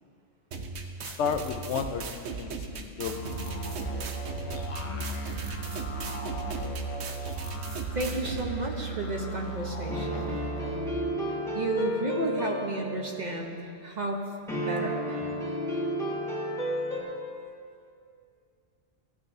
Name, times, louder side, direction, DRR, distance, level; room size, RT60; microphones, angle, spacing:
sound 1, 0.5-8.5, right 4 dB, 70° right, 1.0 m, -38 dB
voice 1, 1.0-3.7, left 6 dB, 80° left, 8 dB, 0.9 m, -33 dB
sound 2, 3.0-10.9, right 2 dB, 35° left, 0.7 m, -36 dB
voice 2, 7.9-10.4 11.3-13.6 13.8-14.2 14.5-15.1, right 2 dB, 40° right, 1 dB, 1.0 m, -32 dB
sound 3, 9.9-13.6 14.5-17.0, equal, 5° left, 1.4 m, -32 dB
15.5 x 8.9 x 2.7 m, 2.4 s
omnidirectional pair, 1.2 m